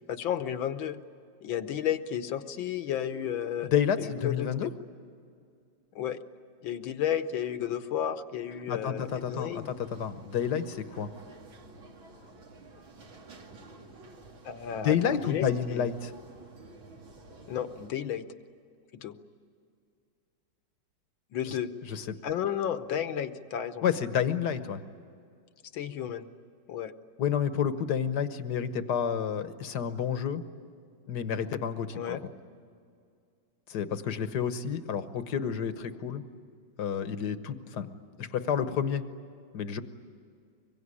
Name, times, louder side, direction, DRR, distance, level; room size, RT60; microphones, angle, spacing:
voice 1, 0.1-1.0 1.4-3.7 4.0-4.7 6.0-6.2 6.6-9.7 14.4-15.9 17.5-18.3 18.9-19.2 21.3-21.7 22.2-23.8 25.7-26.3 26.7-26.9 31.9-32.2, left 9 dB, 75° left, 10 dB, 1.7 m, -32 dB
voice 2, 3.7-4.7 8.7-11.1 14.8-16.1 21.4-21.5 21.9-22.2 23.8-24.8 27.2-30.4 31.1-32.2 33.7-36.2 36.8-37.9 38.2-39.0 39.5-39.8, left 8 dB, 60° left, 11 dB, 1.5 m, -30 dB
sound 1, 9.0-17.9, right 3 dB, 75° right, 3.1 m, -51 dB
25.0 x 23.0 x 9.8 m, 2.4 s
omnidirectional pair, 2.2 m